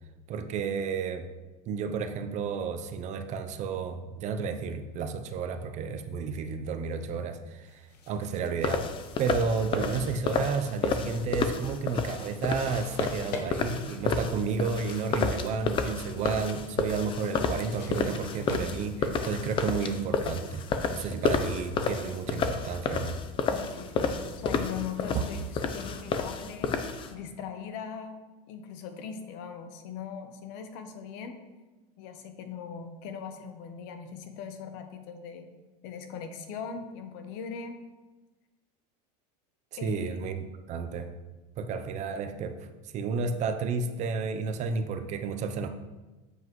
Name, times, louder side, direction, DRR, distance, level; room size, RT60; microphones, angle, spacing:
voice 1, 0.3-1.3 1.7-8.9 9.2-20.6 20.9-23.2 25.1-25.3 39.7-41.1 41.6-42.6 42.9-45.7, right 5 dB, 35° right, 8 dB, 0.6 m, -32 dB
sound 1, 7.7-19.8, left 4 dB, 90° left, 1.2 m, -48 dB
sound 2, 8.6-27.1, left 5 dB, 25° left, 0.6 m, -31 dB
voice 2, 23.5-26.8 27.1-28.2 28.5-31.4 32.0-35.5 35.8-37.8 39.8-40.4, left 6 dB, 55° left, 7 dB, 1.0 m, -40 dB
8.0 x 7.3 x 3.1 m, 1.2 s
supercardioid pair, 145°, 20 cm